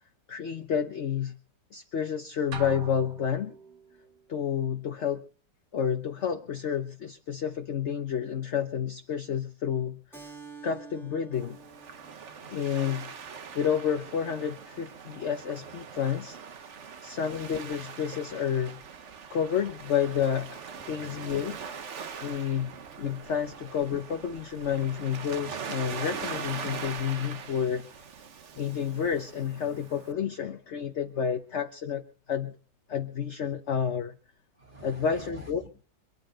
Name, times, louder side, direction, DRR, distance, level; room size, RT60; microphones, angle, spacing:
voice 1, 0.3-1.4 1.7-3.5 4.3-5.2 5.7-10.0 10.6-11.6 12.5-13.1 13.5-16.4 17.0-18.8 19.3-20.6 20.9-21.6 22.2-22.7 23.0-27.9 28.6-32.5 32.9-34.1 34.8-35.6, left 8 dB, 50° left, 6 dB, 1.1 m, -30 dB
sound 1, 2.5-4.0, right 2 dB, 85° right, 2.1 m, -40 dB
Keyboard (musical), 10.1-15.2, right 5 dB, ahead, 2.2 m, -51 dB
Waves surf, 11.3-30.1, right 6 dB, 50° right, 1.2 m, -42 dB
voice 2, 16.7-17.2 20.7-21.7 34.5-35.7, equal, 30° right, 1 dB, 4.0 m, -49 dB
27.0 x 9.8 x 3.9 m, 0.44 s
omnidirectional pair, 1.8 m